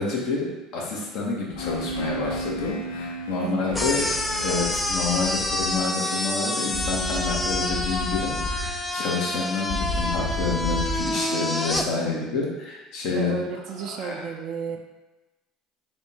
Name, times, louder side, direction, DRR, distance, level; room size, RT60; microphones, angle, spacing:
voice 1, 0.0-13.3 14.0-14.1, left 4 dB, 65° left, -3 dB, 1.1 m, -28 dB
sound 1, 1.5-2.7 3.7-5.7 6.7-8.7 9.7-11.0, left 1 dB, 45° left, 0.7 m, -33 dB
sound 2, 1.6-9.4, right 1 dB, 85° left, 0.4 m, -37 dB
voice 2, 3.4-4.1 13.1-14.8, right 6 dB, 60° right, 3 dB, 0.4 m, -33 dB
sound 3, 3.7-11.9, left 1 dB, 15° left, 0.4 m, -28 dB
3.5 x 2.5 x 4.2 m, 1.1 s
hypercardioid pair, 80°, 0 cm